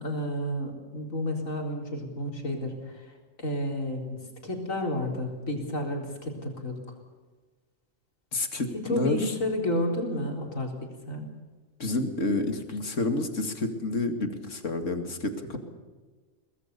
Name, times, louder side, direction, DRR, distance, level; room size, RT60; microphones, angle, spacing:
voice 1, 0.0-3.1 3.4-4.2 4.4-6.7 8.7-11.3, left 1 dB, 85° left, 2 dB, 4.5 m, -31 dB
voice 2, 8.3-9.3 11.8-15.6, left 2 dB, 70° left, 7 dB, 2.6 m, -29 dB
23.5 x 19.5 x 6.8 m, 1.4 s
omnidirectional pair, 1.3 m